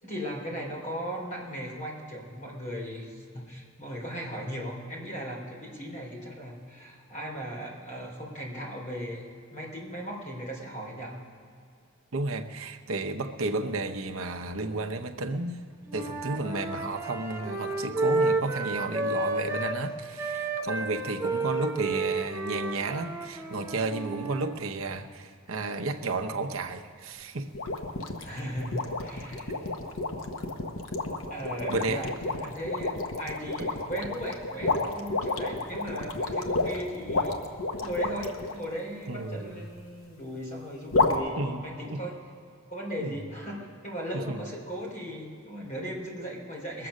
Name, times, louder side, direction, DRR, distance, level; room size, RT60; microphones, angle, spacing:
voice 1, 0.0-11.2 28.2-29.7 31.3-37.4 37.8-42.2 42.7-46.9, equal, 40° left, -2 dB, 3.4 m, -37 dB
voice 2, 12.1-15.6 15.9-27.5 31.7-32.0 39.1-39.6 41.4-42.0 43.0-43.2 44.3-44.4, right 2 dB, 85° right, 5 dB, 0.8 m, -32 dB
Wind instrument woodwind instrument, 15.9-19.8 20.2-24.5, right 3 dB, 15° right, 1.1 m, -31 dB
sound 1, 27.5-38.5 40.9-41.2, left 3 dB, 75° left, 1.1 m, -30 dB
21.5 x 7.7 x 6.3 m, 2.3 s
head